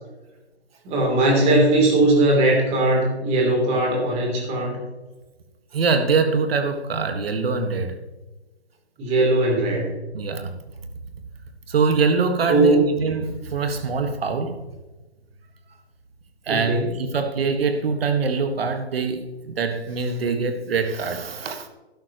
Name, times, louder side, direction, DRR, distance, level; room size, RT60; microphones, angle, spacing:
voice 1, 0.8-4.8 9.0-10.0 12.5-12.9 16.5-16.9, right 2 dB, 20° right, 0 dB, 3.2 m, -19 dB
voice 2, 5.7-8.0 10.1-10.5 11.7-14.6 16.5-21.7, right 4 dB, 60° right, 7 dB, 1.7 m, -23 dB
12.0 x 11.5 x 3.0 m, 1.1 s
hypercardioid pair, 145°, 33 cm